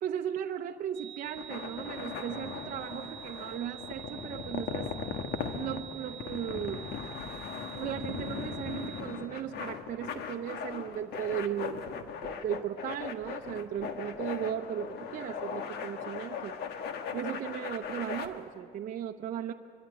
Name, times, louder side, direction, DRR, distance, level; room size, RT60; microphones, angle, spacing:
voice 1, 0.0-4.9 5.5-6.8 7.8-16.6 17.1-19.5, right 9 dB, 55° right, 3 dB, 0.8 m, -36 dB
sound 1, 0.9-9.0, right 13 dB, 5° left, 3.9 m, -47 dB
sound 2, 1.2-18.3, left 6 dB, 75° left, 1.5 m, -39 dB
24.0 x 13.5 x 9.0 m, 2.2 s
cardioid pair, 110°, 17 cm